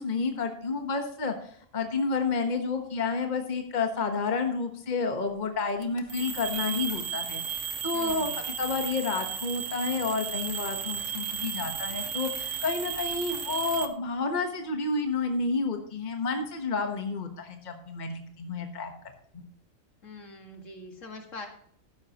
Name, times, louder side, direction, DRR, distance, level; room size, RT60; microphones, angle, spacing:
voice 1, 0.0-1.3 1.7-18.9 19.3-19.4, left 4 dB, 35° left, 5 dB, 1.3 m, -30 dB
sound 1, 5.8-13.9, right 7 dB, 65° right, 1.3 m, -34 dB
voice 2, 7.9-8.4 20.0-21.5, left 2 dB, 65° left, 3 dB, 2.3 m, -43 dB
13.0 x 10.5 x 3.0 m, 0.62 s
omnidirectional pair, 1.4 m